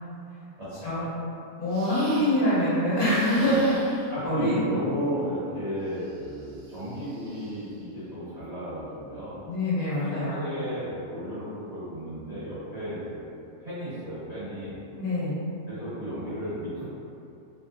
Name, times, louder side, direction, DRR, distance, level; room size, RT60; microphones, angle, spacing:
voice 1, 0.6-1.1 1.7-1.9 3.4-3.6 4.1-9.4 10.3-13.2 13.6-14.8 15.7-16.8, equal, 30° right, -15 dB, 1.0 m, -33 dB
voice 2, 1.6-3.8 4.2-4.5 9.5-10.4 15.0-15.4, equal, 70° left, -10 dB, 1.3 m, -24 dB
sound 1, 1.7-2.6 3.0-4.2 5.9-7.8, right 2 dB, 85° right, 1.1 m, -46 dB
3.2 x 2.5 x 2.3 m, 2.6 s
omnidirectional pair, 1.6 m